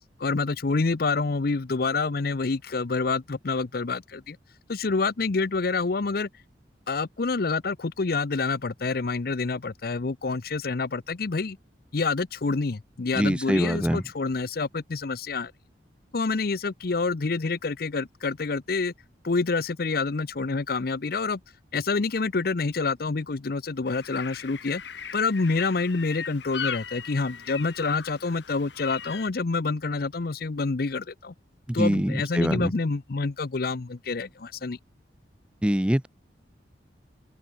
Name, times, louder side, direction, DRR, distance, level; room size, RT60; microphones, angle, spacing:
voice 1, 0.2-4.4 4.7-6.3 6.9-11.6 11.9-15.5 16.1-18.9 19.2-21.4 21.7-24.8 25.1-31.3 31.7-34.8, left 4 dB, 55° left, 0.7 m, -27 dB
voice 2, 13.1-14.0 31.7-32.7 35.6-36.1, equal, 5° right, 0.5 m, -24 dB
sound 1, 23.9-29.3, left 7 dB, 80° left, 2.1 m, -38 dB
open air
head